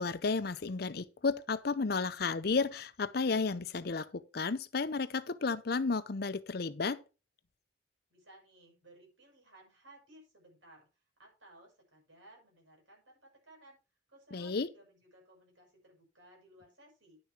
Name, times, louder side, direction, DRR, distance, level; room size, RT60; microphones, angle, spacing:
voice 1, 0.0-7.0 14.3-14.7, left 4 dB, 50° left, 0.6 m, -32 dB
voice 2, 8.1-10.9 11.2-13.8 14.1-17.2, right 1 dB, 75° right, 6.7 m, -59 dB
10.5 x 6.6 x 4.7 m
head